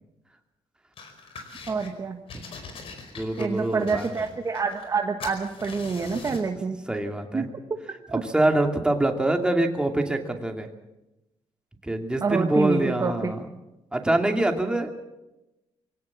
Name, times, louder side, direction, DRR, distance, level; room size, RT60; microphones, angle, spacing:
sound 1, 1.0-1.9 2.3-4.9 5.2-6.5, left 4 dB, 60° left, 4.8 m, -42 dB
voice 1, 1.7-2.2 3.4-6.8 7.3-7.5 8.1-8.2 12.2-13.3, right 5 dB, 30° right, 5 dB, 1.5 m, -27 dB
voice 2, 3.1-4.1 6.9-7.5 8.1-10.7 11.8-13.5 13.9-14.9, right 1 dB, 10° right, 4 dB, 2.6 m, -25 dB
24.5 x 17.5 x 7.4 m, 0.97 s
cardioid pair, 130°, 10 cm